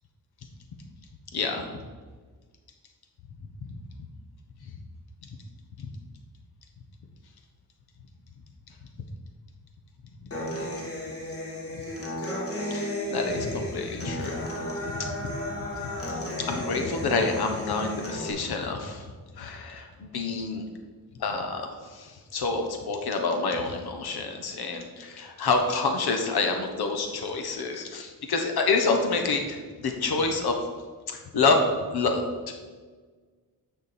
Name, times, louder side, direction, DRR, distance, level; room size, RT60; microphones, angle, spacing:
voice 1, 1.3-1.8 12.7-14.4 14.8-15.4 16.4-19.1 19.3-20.6 21.2-30.6 31.1-31.6 31.9-32.5, left 4 dB, 85° left, 4 dB, 1.3 m, -28 dB
Human voice / Acoustic guitar, 10.3-18.3, left 1 dB, 40° left, 2.0 m, -34 dB
6.9 x 6.1 x 7.4 m, 1.5 s
wide cardioid pair, 170°, 37 cm